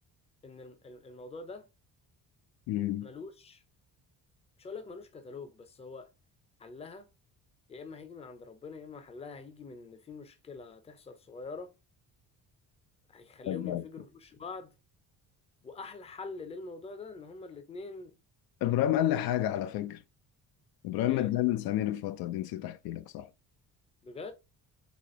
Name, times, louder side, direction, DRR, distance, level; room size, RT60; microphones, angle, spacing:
voice 1, 0.4-1.7 3.0-3.6 4.6-6.1 6.6-7.1 7.7-11.7 13.1-14.7 15.6-18.1 19.6-19.7 21.1-21.3 24.0-24.3, left 4 dB, 15° left, 0.5 m, -44 dB
voice 2, 2.7-3.1 13.5-13.9 18.6-20.0 20.8-23.3, left 13 dB, 80° left, 0.5 m, -30 dB
4.2 x 2.9 x 3.0 m
cardioid pair, 155°, 36 cm